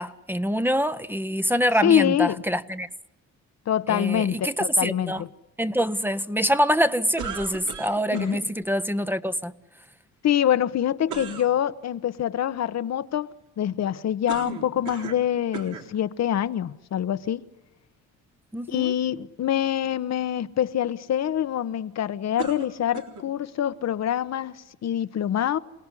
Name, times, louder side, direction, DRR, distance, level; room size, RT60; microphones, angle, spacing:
voice 1, 0.0-2.9 3.9-5.2 5.6-9.5 18.5-18.9, equal, 5° right, 1.0 m, -25 dB
voice 2, 1.8-2.4 3.7-5.3 8.1-8.4 10.2-13.3 13.6-17.4 18.7-25.6, left 10 dB, 60° left, 1.1 m, -25 dB
sound 1, 7.2-8.4 11.1-11.5 14.3-15.3 15.5-15.9 16.7-16.8 22.4-23.3, right 7 dB, 75° right, 4.0 m, -36 dB
28.0 x 18.5 x 9.9 m
cardioid pair, 90°, 30 cm